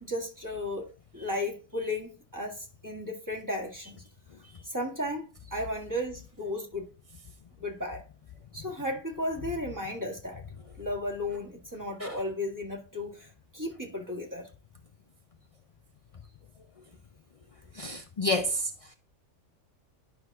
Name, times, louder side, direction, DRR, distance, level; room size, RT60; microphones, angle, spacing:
voice 1, 0.0-4.0 4.6-6.9 7.6-8.0 8.5-10.4 10.8-14.5, left 1 dB, 15° right, 1.8 m, -34 dB
voice 2, 17.8-18.7, left 1 dB, 50° left, 0.4 m, -29 dB
11.0 x 5.8 x 2.4 m
omnidirectional pair, 1.3 m